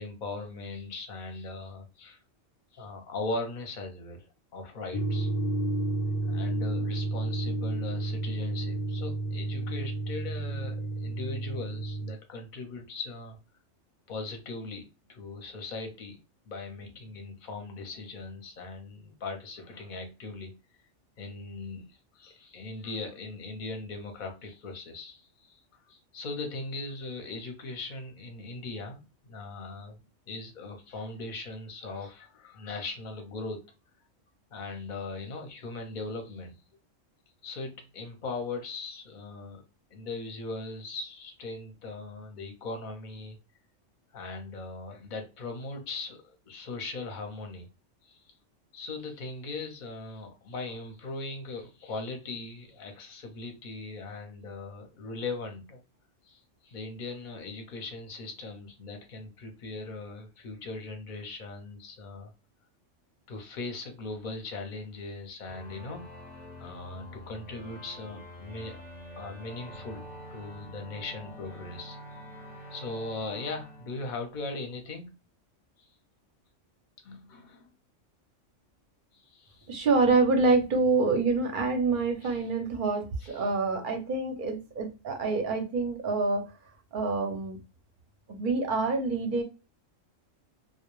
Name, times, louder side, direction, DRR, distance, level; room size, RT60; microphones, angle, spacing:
voice 1, 0.0-2.2 2.7-5.3 6.2-13.4 14.1-16.2 16.4-20.6 21.2-30.0 30.3-33.6 34.5-36.5 37.4-39.6 39.9-43.4 44.1-47.7 48.0-48.3 48.7-55.8 56.2-62.3 63.3-66.1 66.6-68.8 69.2-70.0 70.3-75.1 75.8-75.9 77.0-77.7 79.1-79.7 82.2-82.5 83.2-83.5, left 3 dB, 50° left, 0.7 m, -39 dB
sound 1, 4.9-12.1, right 2 dB, 85° left, 0.3 m, -31 dB
sound 2, 65.5-74.8, equal, 15° right, 0.4 m, -46 dB
voice 2, 79.7-86.4 86.9-87.6 88.3-89.4, right 3 dB, 55° right, 0.6 m, -26 dB
2.2 x 2.1 x 3.0 m
omnidirectional pair, 1.3 m